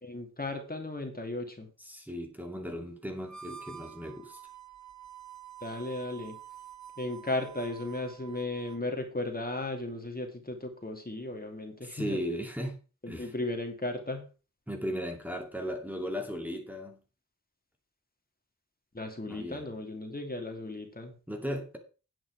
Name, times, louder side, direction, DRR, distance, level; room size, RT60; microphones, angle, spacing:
voice 1, 0.0-1.7 5.6-6.4 7.0-12.2 13.0-14.3 18.9-21.2, left 2 dB, 25° left, 2.6 m, -36 dB
voice 2, 1.9-4.4 11.8-12.8 13.1-13.3 14.7-17.0 19.3-19.6 21.3-21.8, equal, 5° right, 2.3 m, -36 dB
Harmonica, 3.2-8.9, right 8 dB, 60° right, 1.3 m, -48 dB
9.5 x 9.0 x 4.8 m
wide cardioid pair, 70°, 33 cm